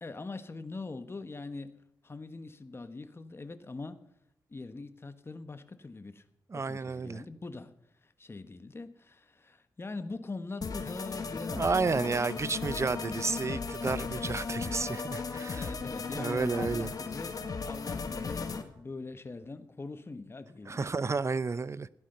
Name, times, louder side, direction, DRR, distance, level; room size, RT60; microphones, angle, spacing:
voice 1, 0.0-1.8 2.0-4.0 4.5-6.2 6.5-7.8 8.0-12.0 12.8-13.0 15.5-17.4 17.6-20.9, left 3 dB, 30° left, 1.2 m, -42 dB
voice 2, 6.5-7.2 11.5-15.7 16.1-16.9 20.7-21.9, right 4 dB, 35° right, 0.7 m, -31 dB
sound 1, 10.6-18.6, left 4 dB, 50° left, 1.6 m, -36 dB
16.0 x 11.0 x 5.6 m
cardioid pair, 65°, 8 cm